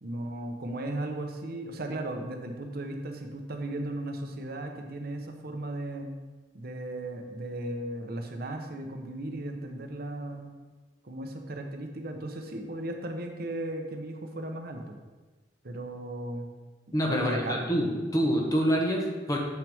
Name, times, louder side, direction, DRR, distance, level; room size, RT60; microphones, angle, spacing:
voice 1, 0.0-6.1 6.5-10.5 11.0-15.0 15.6-16.5 17.1-17.6, right 1 dB, 60° right, 4 dB, 0.9 m, -36 dB
voice 2, 16.9-19.4, equal, 20° left, 0 dB, 1.0 m, -26 dB
7.6 x 6.1 x 3.5 m, 1.3 s
head